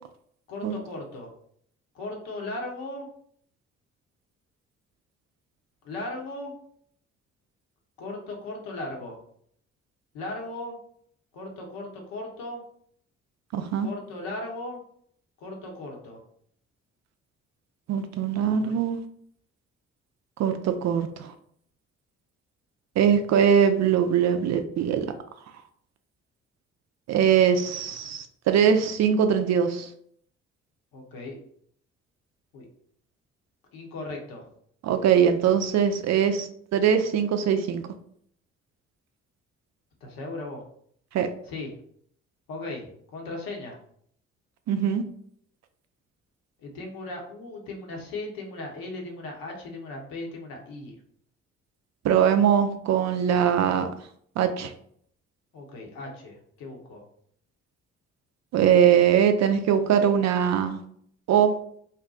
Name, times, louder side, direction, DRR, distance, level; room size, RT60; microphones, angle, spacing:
voice 1, 0.5-1.3 1.9-3.1 5.8-6.5 8.0-9.2 10.1-10.8 11.3-12.6 13.8-14.8 15.4-16.2 18.6-18.8 30.9-31.4 32.5-32.7 33.7-34.4 40.0-40.6 41.5-41.7 42.5-43.8 46.6-50.9 55.5-57.0, left 2 dB, 70° left, 0 dB, 1.0 m, -37 dB
voice 2, 13.5-13.9 17.9-19.0 20.4-21.3 23.0-25.1 27.1-29.9 34.8-37.8 41.1-41.3 44.7-45.0 52.0-53.9 54.4-54.7 58.5-60.8 61.3-61.5, right 8 dB, 50° right, 7 dB, 0.5 m, -22 dB
2.7 x 2.2 x 3.7 m, 0.64 s
hypercardioid pair, 45°, 36 cm